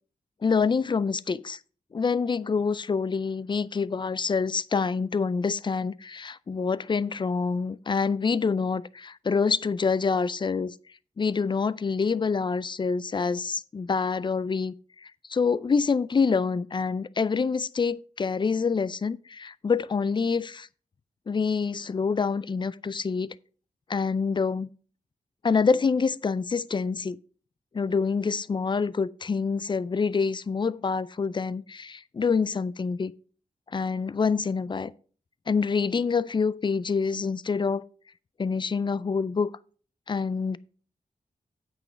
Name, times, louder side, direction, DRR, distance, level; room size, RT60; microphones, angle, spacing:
voice 1, 0.4-1.6 1.9-10.8 11.2-20.7 21.3-23.3 23.9-24.7 25.4-27.2 27.7-33.1 33.7-34.9 35.5-37.8 38.4-39.5 40.1-40.6, left 5 dB, 30° left, 0.4 m, -26 dB
8.7 x 6.2 x 5.0 m
wide cardioid pair, 95°, 15 cm